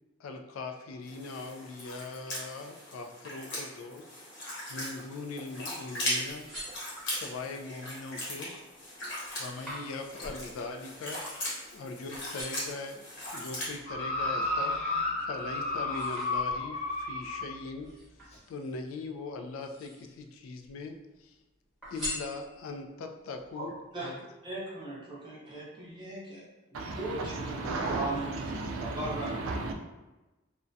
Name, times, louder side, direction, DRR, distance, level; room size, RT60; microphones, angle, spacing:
voice 1, 0.2-4.1 4.7-6.4 7.0-8.5 9.4-13.1 13.3-17.9 18.5-21.4 21.9-23.7 24.0-24.1, left 3 dB, 80° left, 0.3 m, -41 dB
sound 1, 1.1-13.7, left 1 dB, 60° left, 0.9 m, -39 dB
sound 2, 6.3-7.4 8.0-8.4 8.7-11.8 12.1-12.8 13.4-14.9 15.3-16.9 17.8-18.9 19.5-20.3 20.6-21.3 21.8-22.9 23.4-23.5, equal, ahead, 0.9 m, -44 dB
sound 3, 13.9-17.5 18.3-18.4, left 2 dB, 30° left, 0.6 m, -32 dB
voice 2, 23.5-26.4 26.7-29.7, right 2 dB, 20° right, 0.6 m, -39 dB
voice 3, 26.7-29.7, right 3 dB, 85° right, 0.4 m, -34 dB
2.3 x 2.1 x 2.5 m
head